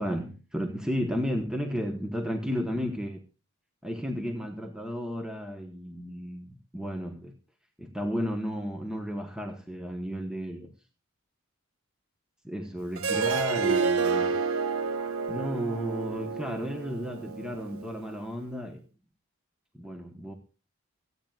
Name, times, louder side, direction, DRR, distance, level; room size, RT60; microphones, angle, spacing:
voice 1, 0.0-3.2 3.8-7.3 7.8-10.7 12.4-14.4 15.3-18.8 19.7-20.3, equal, 5° right, 1.1 m, -33 dB
Harp, 13.0-18.1, right 5 dB, 75° right, 1.2 m, -29 dB
24.5 x 9.0 x 2.4 m
head